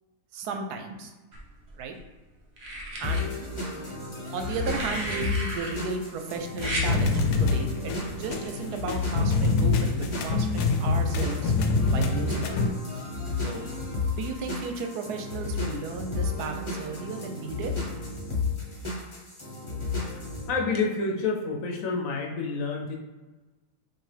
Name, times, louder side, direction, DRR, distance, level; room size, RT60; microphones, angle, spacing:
voice 1, 0.3-1.1 1.8-1.9 3.0-3.3 4.3-11.5 11.9-12.5 13.4-13.7 14.2-17.7, right 4 dB, 85° right, 5 dB, 1.2 m, -34 dB
sound 1, 1.3-2.0 2.6-3.2 4.4-5.7 6.6-6.9 8.3-8.5, right 1 dB, 50° right, 1.0 m, -34 dB
sound 2, 3.0-20.5, left 4 dB, 25° left, 0.8 m, -32 dB
sound 3, 6.6-12.7, left 3 dB, 85° left, 1.1 m, -26 dB
voice 2, 20.5-23.0, left 4 dB, 65° left, 1 dB, 1.0 m, -28 dB
5.8 x 2.6 x 3.3 m, 1.2 s
omnidirectional pair, 1.7 m